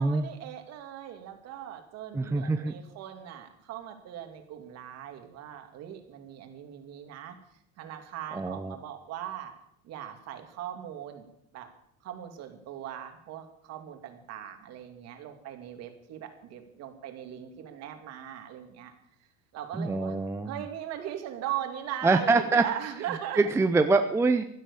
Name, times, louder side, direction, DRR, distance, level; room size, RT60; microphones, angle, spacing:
voice 1, 0.0-7.4 7.8-9.5 9.8-11.3 11.5-11.7 12.0-18.9 19.5-20.2 20.4-23.5, right 11 dB, 50° right, 6 dB, 2.6 m, -39 dB
voice 2, 2.1-2.7 8.3-8.7 19.8-20.6 22.0-22.6 23.3-24.4, right 3 dB, 10° right, 8 dB, 0.5 m, -24 dB
16.0 x 11.0 x 7.0 m, 0.75 s
cardioid pair, 160°, 32 cm